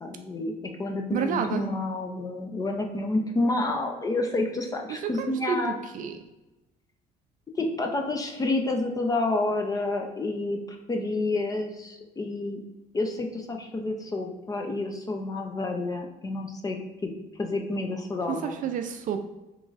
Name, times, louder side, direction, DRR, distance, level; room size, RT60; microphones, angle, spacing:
voice 1, 0.0-5.8 7.6-12.6 12.9-17.1 17.4-18.6, left 2 dB, 20° left, 3 dB, 0.5 m, -29 dB
voice 2, 1.1-1.6 4.9-5.6 5.9-6.2 18.3-19.2, right 7 dB, 50° right, 7 dB, 0.4 m, -29 dB
3.7 x 3.0 x 2.4 m, 1.0 s
cardioid pair, 110°, 17 cm